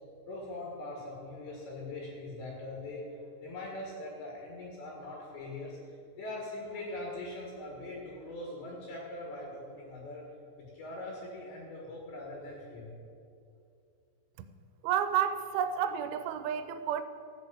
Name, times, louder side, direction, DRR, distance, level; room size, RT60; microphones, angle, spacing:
voice 1, 0.3-10.3 10.7-12.9, left 2 dB, 65° left, -2 dB, 3.8 m, -42 dB
voice 2, 14.8-17.0, right 9 dB, 90° right, 10 dB, 3.4 m, -30 dB
14.0 x 6.7 x 7.9 m, 2.5 s
omnidirectional pair, 5.9 m